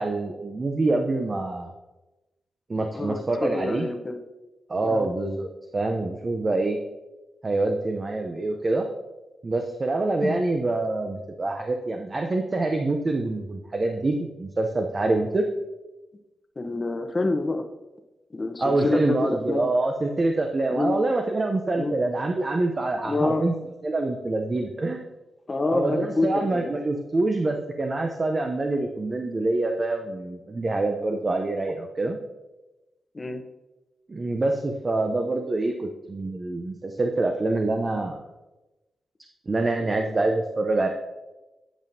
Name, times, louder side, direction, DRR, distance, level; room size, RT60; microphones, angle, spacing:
voice 1, 0.0-1.7 2.7-3.9 4.7-6.8 7.4-8.9 9.4-15.4 18.6-23.5 23.8-25.0 25.7-32.2 34.1-38.2 39.5-40.9, right 2 dB, 35° right, 3 dB, 0.6 m, -26 dB
voice 2, 2.9-4.2 4.8-5.1 10.2-10.4 16.6-17.7 18.3-19.7 20.7-20.9 21.7-21.9 23.0-23.4 25.5-26.8 33.1-33.4, left 2 dB, 30° left, 6 dB, 0.8 m, -27 dB
10.0 x 5.2 x 2.7 m, 1.1 s
cardioid pair, 75°, 0 cm